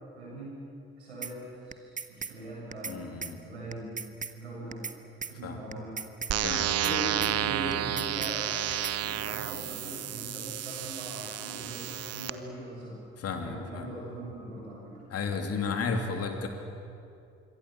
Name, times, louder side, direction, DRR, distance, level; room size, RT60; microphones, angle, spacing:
voice 1, 0.1-0.6 1.0-3.0 3.4-4.0 4.3-4.8 5.2-6.0 6.8-8.5 9.0-13.0 13.4-15.0, right 1 dB, 80° right, -4 dB, 7.8 m, -41 dB
sound 1, 1.2-1.3 1.7-2.3 2.7-3.0 3.2-3.3 3.7-4.3 4.7-5.0 5.2-5.3 5.7-6.3 6.7-7.0 7.2-7.3 7.7-8.3 8.7-9.0, right 5 dB, 25° right, 1.3 m, -37 dB
voice 2, 2.9-3.4 5.4-5.6 6.4-6.8 13.2-13.9 15.1-16.5, left 5 dB, 45° left, 4 dB, 3.3 m, -33 dB
sound 2, 6.3-12.3, right 11 dB, 50° right, 1.2 m, -31 dB
26.0 x 24.5 x 8.0 m, 2.5 s
figure-of-eight pair, 45°, 33 cm